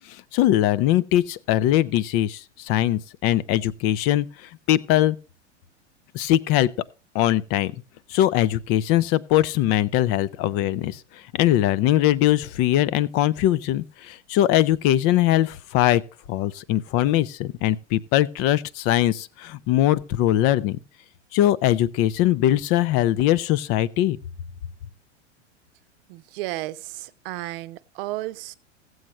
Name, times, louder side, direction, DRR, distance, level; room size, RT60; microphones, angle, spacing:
voice 1, 0.1-5.2 6.1-6.7 7.1-7.7 8.1-16.0 16.3-20.8 21.3-24.2, left 13 dB, 40° left, 0.6 m, -21 dB
voice 2, 26.1-28.5, right 17 dB, 50° right, 0.8 m, -33 dB
15.5 x 7.9 x 3.1 m
hypercardioid pair, 95°, 35 cm